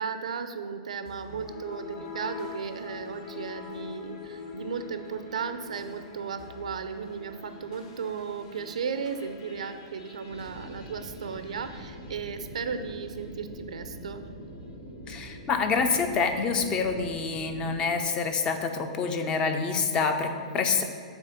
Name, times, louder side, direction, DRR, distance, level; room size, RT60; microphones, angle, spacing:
voice 1, 0.0-14.2 20.4-20.5, right 6 dB, 90° right, 9 dB, 0.5 m, -35 dB
sound 1, 1.1-13.4, left 5 dB, 45° left, 1.2 m, -45 dB
sound 2, 10.2-17.9, equal, 85° left, 1.2 m, -43 dB
voice 2, 15.1-20.8, left 5 dB, 25° left, 7 dB, 0.5 m, -27 dB
7.0 x 3.4 x 5.8 m, 2.1 s
hypercardioid pair, 135°, 4 cm